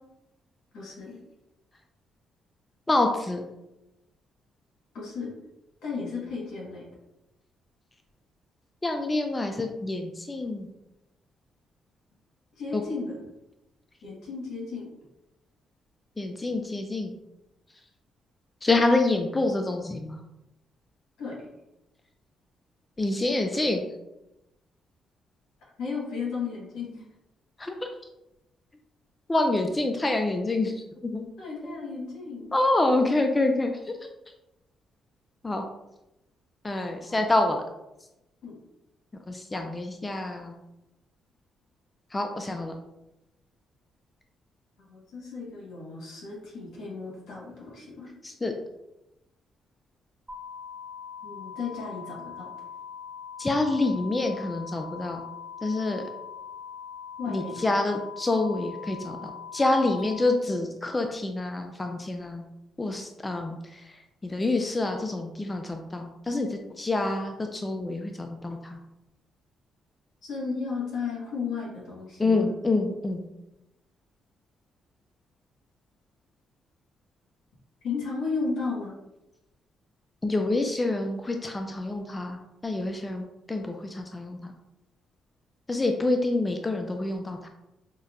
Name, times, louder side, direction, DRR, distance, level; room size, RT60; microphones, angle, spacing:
voice 1, 0.7-1.2 4.9-5.4 5.8-6.8 12.6-13.2 14.0-14.8 21.2-21.4 25.8-27.0 31.4-32.5 37.1-37.2 38.4-38.5 44.9-48.1 51.2-52.5 57.2-57.6 60.1-60.3 70.2-72.5 77.8-79.0, left 4 dB, 80° left, -3 dB, 1.3 m, -34 dB
voice 2, 2.9-3.4 8.8-10.7 12.7-12.8 16.2-17.2 18.6-20.2 23.0-23.8 27.6-27.7 29.3-31.3 31.6-31.7 32.5-34.0 35.4-35.6 36.6-37.6 39.3-40.5 42.1-42.7 48.2-48.5 53.4-55.2 55.6-56.1 57.3-62.4 62.8-63.9 64.2-68.8 72.2-73.2 80.2-84.5 85.7-87.5, left 2 dB, 20° left, 4 dB, 0.3 m, -27 dB
sound 1, 50.3-60.3, left 7 dB, 10° right, 0.7 m, -42 dB
5.4 x 2.1 x 2.4 m, 0.92 s
cardioid pair, 90°, 0 cm